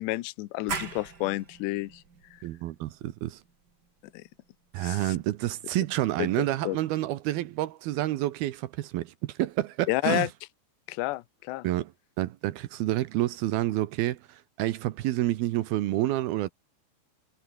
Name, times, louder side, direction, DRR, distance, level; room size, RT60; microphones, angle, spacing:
voice 1, 0.0-2.0 4.1-4.2 4.8-5.2 6.2-6.3 6.6-6.8 9.9-10.3 10.9-11.7, left 19 dB, 75° left, 2.9 m, -30 dB
sound 1, 0.7-6.1, right 5 dB, 30° right, 2.2 m, -42 dB
voice 2, 2.4-3.4 4.7-10.3 11.6-11.9 12.2-16.5, right 15 dB, 75° right, 2.3 m, -29 dB
omnidirectional pair, 5.5 m